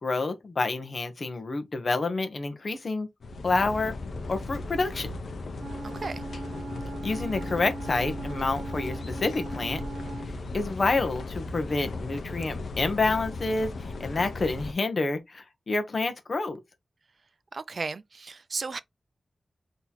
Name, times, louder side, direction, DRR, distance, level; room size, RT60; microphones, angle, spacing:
voice 1, 0.0-3.1 3.4-3.9 4.3-5.2 7.0-9.8 10.5-16.6, left 3 dB, 45° left, 0.9 m, -28 dB
sound 1, 3.2-14.7, left 2 dB, 80° left, 0.7 m, -36 dB
Wind instrument woodwind instrument, 5.6-10.4, right 3 dB, 80° right, 0.9 m, -40 dB
voice 2, 5.8-6.2 17.5-18.8, right 4 dB, 50° right, 0.4 m, -35 dB
3.9 x 2.9 x 3.9 m
wide cardioid pair, 130°, 0 cm